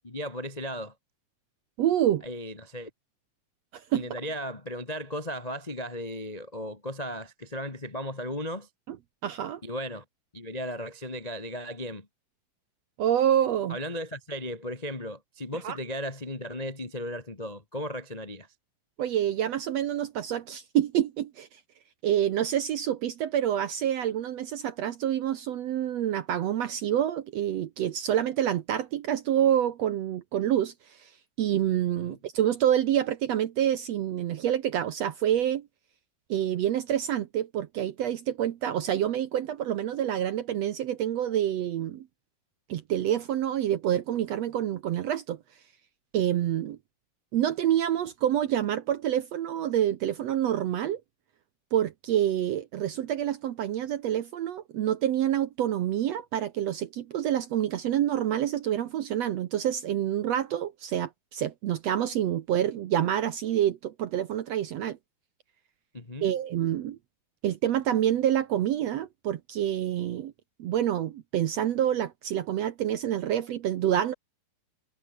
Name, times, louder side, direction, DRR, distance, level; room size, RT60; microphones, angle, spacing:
voice 1, 0.0-0.9 2.2-2.9 3.9-8.7 9.6-10.0 10.3-12.1 13.7-18.5 32.0-32.2 65.9-66.3, equal, 25° left, 0.8 m, -36 dB
voice 2, 1.8-2.2 3.7-4.0 8.9-9.0 9.2-9.6 13.0-13.8 15.6-15.8 19.0-21.5 22.0-31.1 31.4-35.7 36.3-42.1 42.7-45.4 46.1-46.8 47.3-51.0 51.7-65.0 66.2-67.0 67.4-70.3 70.6-74.1, right 11 dB, 65° right, 1.7 m, -27 dB
omnidirectional pair, 3.9 m